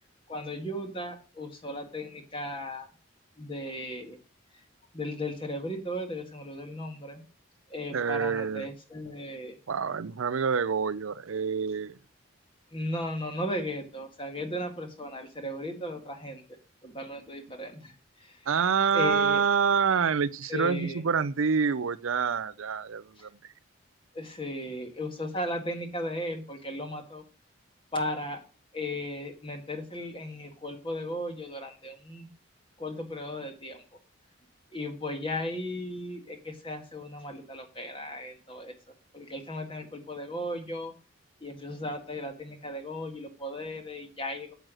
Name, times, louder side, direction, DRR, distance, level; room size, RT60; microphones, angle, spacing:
voice 1, 0.3-2.9 3.4-4.2 4.9-7.2 7.7-9.6 12.7-16.4 16.8-18.5 18.9-19.4 20.5-21.0 23.2-23.3 24.1-27.2 27.9-28.4 28.7-32.3 32.8-33.8 34.7-38.7 39.1-40.9 41.4-44.5, left 1 dB, 25° left, 1.6 m, -36 dB
voice 2, 7.9-8.7 9.7-12.0 18.5-23.5, right 6 dB, 75° right, 0.5 m, -27 dB
8.9 x 8.1 x 6.2 m
head